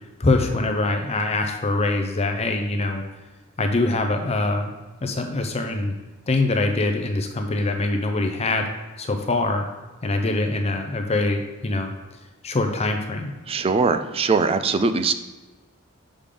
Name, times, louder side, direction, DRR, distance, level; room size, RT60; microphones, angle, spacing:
voice 1, 0.2-3.0 3.6-4.7 5.0-5.9 6.3-8.7 9.0-9.6 10.0-11.9 12.4-13.3, left 2 dB, 30° left, 5 dB, 0.6 m, -23 dB
voice 2, 13.5-15.1, right 4 dB, 25° right, 10 dB, 0.4 m, -21 dB
6.7 x 5.1 x 3.6 m, 1.2 s
head